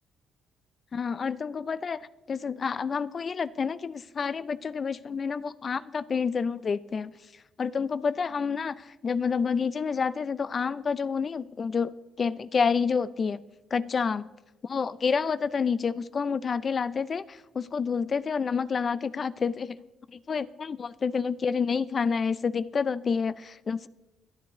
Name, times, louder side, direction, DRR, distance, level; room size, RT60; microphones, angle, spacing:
voice 1, 0.9-7.2 7.6-13.4 13.7-14.3 14.6-19.8 20.1-23.9, left 5 dB, 40° left, 0.4 m, -29 dB
24.5 x 10.0 x 3.0 m
cardioid pair, 90°, 0 cm